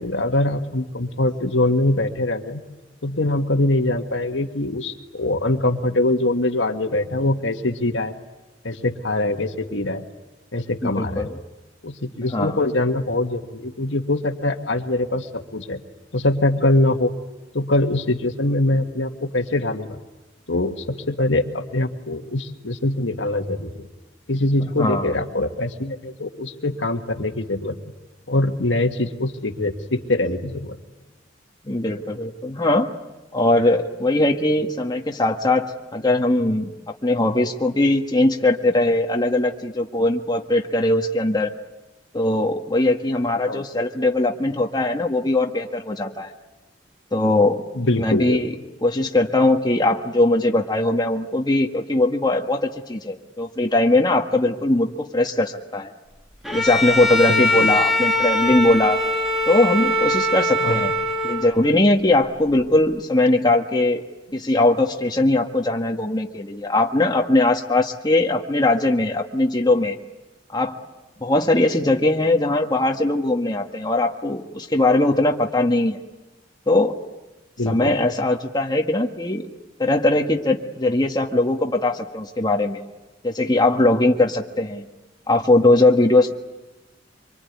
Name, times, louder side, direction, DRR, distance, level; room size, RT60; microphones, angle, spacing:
voice 1, 0.0-2.6 3.0-8.1 8.6-10.0 10.5-11.3 11.8-15.8 16.1-17.1 17.5-20.0 20.5-23.9 24.3-27.8 28.3-30.8 43.5-43.6 47.8-48.4 57.3-57.7 60.6-60.8 77.6-77.9, left 2 dB, 75° left, 5 dB, 1.9 m, -23 dB
voice 2, 10.8-11.4 12.3-12.6 24.6-25.1 31.7-32.9 33.3-36.7 37.0-41.5 42.1-46.3 47.1-47.6 48.0-48.5 48.8-55.9 56.5-59.0 59.4-60.9 61.2-64.0 64.3-70.0 70.5-70.8 71.2-76.0 76.7-76.9 77.6-79.5 79.8-82.8 83.2-84.8 85.3-86.3, left 2 dB, 20° left, 2 dB, 1.6 m, -20 dB
Bowed string instrument, 56.4-61.7, left 1 dB, ahead, 2.6 m, -22 dB
25.5 x 24.0 x 9.6 m, 1.1 s
head